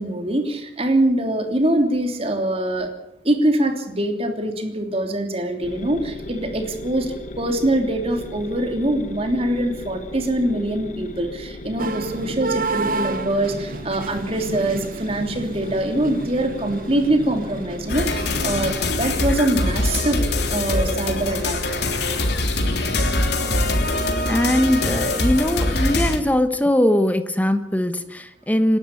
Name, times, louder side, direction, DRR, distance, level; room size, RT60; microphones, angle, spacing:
voice 1, 0.0-2.9 3.2-20.2 20.5-21.6, right 1 dB, 35° right, 4 dB, 3.2 m, -23 dB
sound 1, 5.6-23.9, left 1 dB, 45° left, 1.3 m, -37 dB
sound 2, 11.8-18.7, right 3 dB, 50° right, 0.8 m, -31 dB
sound 3, 17.9-26.2, left 2 dB, 65° left, 3.4 m, -23 dB
voice 2, 24.3-28.8, left 1 dB, 10° left, 9 dB, 1.3 m, -20 dB
28.0 x 12.5 x 8.6 m, 0.81 s
head